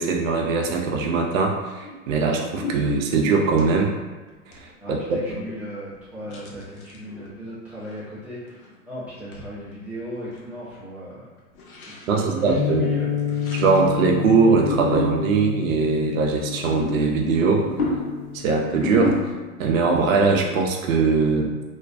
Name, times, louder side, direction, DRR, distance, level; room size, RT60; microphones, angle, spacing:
voice 1, 0.0-3.9 4.9-5.4 12.1-12.8 13.6-17.7 18.3-19.2 19.6-21.5, right 4 dB, 60° right, 1 dB, 0.6 m, -21 dB
sound 1, 1.8-2.1 2.4-3.7 4.3-4.6 5.0-5.1 6.2-7.3 7.8-8.1 8.4-8.8 9.3-9.4 9.8-9.9 10.0-10.5 10.7-10.8 11.6-12.2 13.2-14.0 14.4-15.5 16.4-19.7 20.1-20.3, left 2 dB, 65° left, 0.7 m, -32 dB
voice 2, 4.8-8.6 8.8-11.3 11.9-13.1, right 1 dB, 5° right, -11 dB, 0.5 m, -36 dB
sound 2, 12.5-19.3, left 9 dB, 85° left, 1.0 m, -30 dB
2.5 x 2.2 x 2.4 m, 1.3 s
hypercardioid pair, 110°, 45 cm